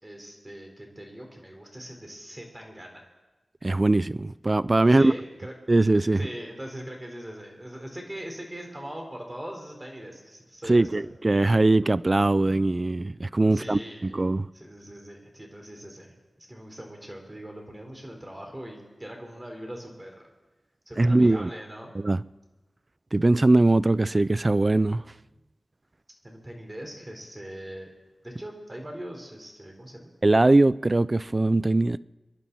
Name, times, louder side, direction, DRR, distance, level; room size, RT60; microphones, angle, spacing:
voice 1, 0.0-3.1 4.8-5.5 6.2-11.0 13.4-14.2 14.5-20.1 20.9-21.9 26.2-27.9 28.2-30.1, right 1 dB, 20° right, 4.3 m, -41 dB
voice 2, 3.6-5.1 5.7-6.2 10.7-14.5 21.0-21.5 22.0-22.2 23.1-25.0 30.2-32.0, right 2 dB, 35° right, 0.4 m, -21 dB
26.0 x 11.0 x 4.2 m
cardioid pair, 50°, 0 cm